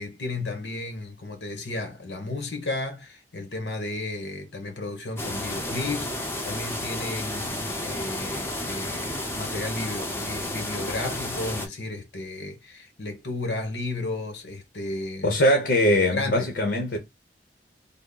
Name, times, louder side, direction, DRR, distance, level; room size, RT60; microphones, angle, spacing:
voice 1, 0.0-15.4 16.1-16.5, left 2 dB, 85° left, 1.0 m, -33 dB
sound 1, 5.2-11.7, left 1 dB, 15° left, 0.6 m, -32 dB
voice 2, 15.2-17.0, equal, 65° left, 0.8 m, -21 dB
3.5 x 2.0 x 3.8 m
head